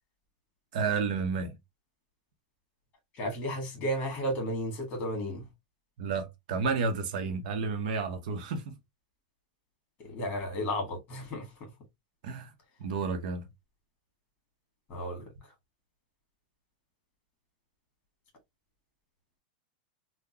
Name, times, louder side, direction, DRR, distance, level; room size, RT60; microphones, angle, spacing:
voice 1, 0.7-1.5 6.0-8.7 12.2-12.5 12.8-13.4, right 5 dB, 65° right, 0.8 m, -31 dB
voice 2, 3.1-5.5 10.0-11.7 14.9-15.2, equal, 30° left, 1.6 m, -33 dB
3.7 x 2.2 x 2.8 m
supercardioid pair, 150°, 5 cm